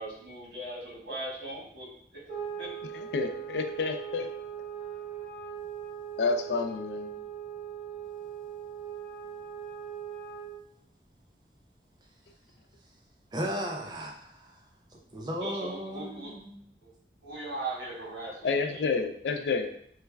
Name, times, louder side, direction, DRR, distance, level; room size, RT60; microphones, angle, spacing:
voice 1, 0.0-2.2 2.6-2.7 15.4-16.3 16.8-16.9 17.2-18.8, right 2 dB, 85° right, -5 dB, 1.3 m, -39 dB
sound 1, 2.3-10.6, right 8 dB, 45° right, 1.1 m, -40 dB
voice 2, 3.1-4.3 6.2-7.1 18.4-19.7, left 4 dB, 75° left, 6 dB, 0.3 m, -29 dB
voice 3, 13.3-14.6 14.9-16.6, equal, 25° right, 0 dB, 0.4 m, -36 dB
3.2 x 2.2 x 3.3 m, 0.68 s
head